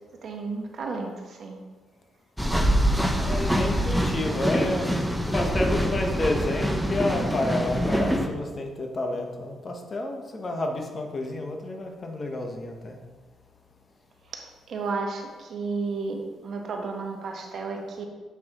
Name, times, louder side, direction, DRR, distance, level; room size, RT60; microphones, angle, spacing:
voice 1, 0.2-1.6 14.7-18.1, right 4 dB, 60° right, 2 dB, 1.1 m, -32 dB
sound 1, 2.4-8.3, equal, ahead, 0.7 m, -25 dB
voice 2, 2.9-4.9 5.1-13.0, left 2 dB, 35° left, 2 dB, 1.1 m, -30 dB
7.2 x 6.2 x 3.0 m, 1.3 s
cardioid pair, 90°, 0 cm